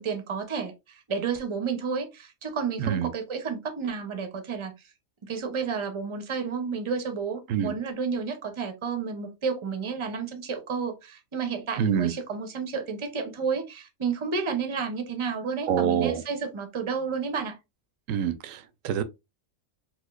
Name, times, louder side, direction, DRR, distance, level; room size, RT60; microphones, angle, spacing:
voice 1, 0.0-4.7 5.2-17.6, right 5 dB, 30° right, 0.6 m, -31 dB
voice 2, 2.8-3.1 7.5-7.7 11.8-12.1 15.7-16.2 18.1-19.0, right 9 dB, 75° right, 0.9 m, -26 dB
4.2 x 2.4 x 2.4 m
omnidirectional pair, 1.4 m